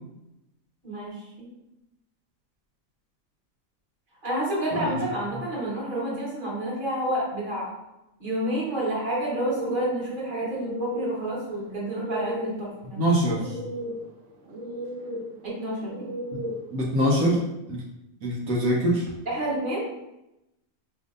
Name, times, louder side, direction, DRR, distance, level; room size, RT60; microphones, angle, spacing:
voice 1, 0.8-1.5 4.2-7.7 8.2-13.0 15.4-16.1 19.2-19.9, right 1 dB, 35° right, -6 dB, 1.5 m, -29 dB
sound 1, 9.4-16.8, equal, 55° right, 0.9 m, -36 dB
voice 2, 12.9-13.6 16.3-16.4 16.7-17.4 17.7-17.8 18.2-19.1, equal, 80° right, -4 dB, 1.3 m, -24 dB
5.1 x 3.2 x 2.5 m, 0.89 s
omnidirectional pair, 1.5 m